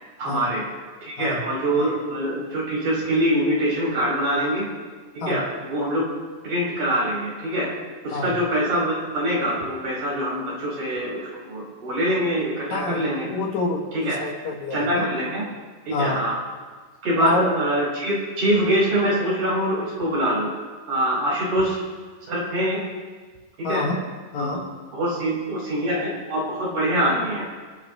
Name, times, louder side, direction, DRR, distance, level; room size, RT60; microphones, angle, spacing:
voice 1, 0.2-0.6 1.0-4.7 5.1-6.0 6.4-7.7 8.0-13.3 13.9-14.2 14.7-15.4 15.9-16.4 17.0-20.5 20.9-21.8 22.3-22.8 23.6-23.8 24.4-24.6 24.9-27.5, right 1 dB, 45° right, -7 dB, 6.2 m, -24 dB
voice 2, 12.7-15.1 15.9-16.2 17.2-17.5 23.6-24.0 24.3-24.6, left 3 dB, 65° left, 0 dB, 1.9 m, -27 dB
28.0 x 12.0 x 2.9 m, 1.4 s
omnidirectional pair, 5.3 m